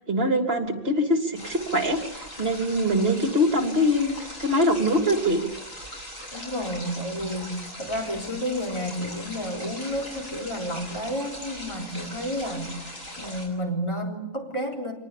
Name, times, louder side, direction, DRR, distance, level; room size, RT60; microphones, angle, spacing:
voice 1, 0.1-4.1 4.4-5.5, equal, 45° right, 4 dB, 3.3 m, -23 dB
sound 1, 1.3-13.5, equal, 85° left, 8.2 m, -40 dB
voice 2, 6.3-14.9, equal, 20° left, 0 dB, 3.9 m, -31 dB
25.5 x 19.5 x 8.5 m, 0.88 s
omnidirectional pair, 1.4 m